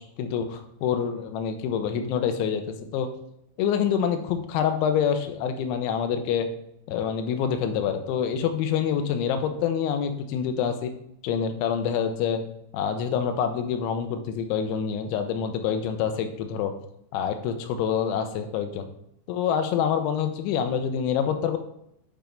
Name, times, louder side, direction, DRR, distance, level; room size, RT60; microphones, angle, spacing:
voice 1, 0.0-2.6 2.9-3.1 3.6-6.5 6.9-10.9 11.2-12.4 12.7-16.7 17.1-18.9 19.3-21.6, left 7 dB, 80° left, 7 dB, 2.8 m, -26 dB
9.1 x 3.5 x 5.1 m, 0.74 s
omnidirectional pair, 5.9 m